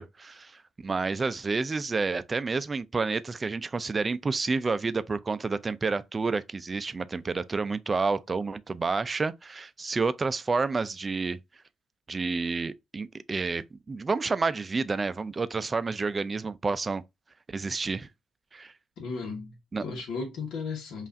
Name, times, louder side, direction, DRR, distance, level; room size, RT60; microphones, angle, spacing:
voice 1, 0.0-11.4 12.1-17.0 17.5-18.1 18.5-18.7 19.7-19.8, right 4 dB, 30° right, 0.4 m, -29 dB
voice 2, 19.0-21.1, left 4 dB, 80° left, 1.0 m, -35 dB
5.4 x 2.4 x 2.5 m
cardioid pair, 90°, 0 cm